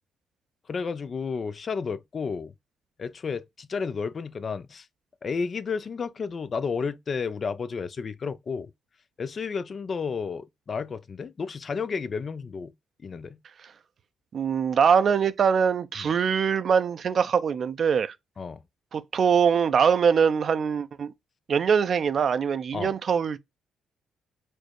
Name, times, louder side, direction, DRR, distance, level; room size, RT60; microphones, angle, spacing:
voice 1, 0.7-2.5 3.0-4.9 5.2-8.7 9.2-12.7 13.0-13.4 16.0-16.1 18.4-18.6 22.7-22.9, left 5 dB, 45° left, 0.4 m, -32 dB
voice 2, 14.3-18.1 18.9-21.1 21.5-23.4, right 7 dB, 55° right, 0.5 m, -23 dB
4.4 x 2.0 x 4.5 m
supercardioid pair, 55°, 0 cm